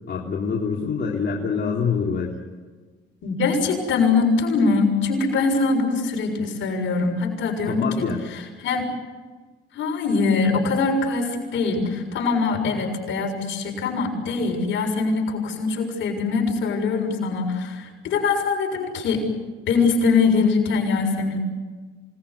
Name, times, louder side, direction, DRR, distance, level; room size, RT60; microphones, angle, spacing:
voice 1, 0.1-2.3 7.6-8.2, left 5 dB, 55° left, -2 dB, 3.5 m, -25 dB
voice 2, 3.2-8.1 8.3-8.9 9.7-19.2 19.7-21.4, left 4 dB, 75° left, 2 dB, 6.8 m, -22 dB
28.0 x 19.5 x 8.4 m, 1.4 s
cardioid pair, 90°, 20 cm